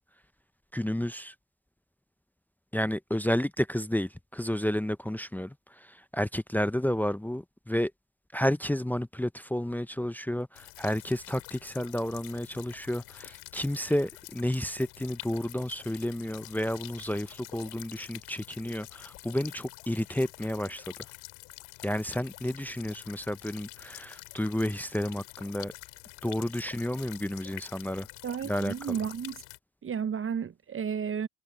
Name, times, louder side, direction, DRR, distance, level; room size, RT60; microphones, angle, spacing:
voice 1, 0.7-1.3 2.7-7.9 8.3-20.9 21.8-25.7 26.2-28.1 28.4-29.0, left 1 dB, 5° left, 0.9 m, -31 dB
sound 1, 10.6-29.6, left 31 dB, 80° left, 2.9 m, -47 dB
voice 2, 28.2-29.4 29.8-31.3, right 7 dB, 35° right, 1.0 m, -32 dB
hypercardioid pair, 60°, 37 cm